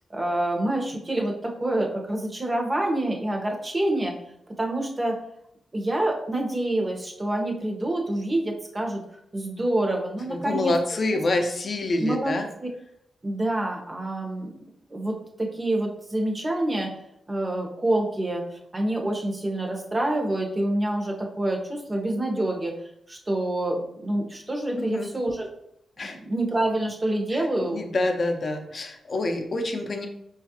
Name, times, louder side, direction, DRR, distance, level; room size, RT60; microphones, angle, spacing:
voice 1, 0.1-4.1 4.6-5.2 5.7-9.0 9.3-10.7 11.1-11.2 12.0-12.3 12.6-12.7 13.2-14.6 14.9-16.9 17.3-22.7 23.1-25.5 26.1-27.8, right 1 dB, 25° right, 1 dB, 0.8 m, -27 dB
voice 2, 10.3-12.5 24.8-25.1 26.0-26.2 27.3-30.1, left 2 dB, 45° left, 4 dB, 0.6 m, -27 dB
4.9 x 2.4 x 2.8 m, 0.77 s
cardioid pair, 80°, 0 cm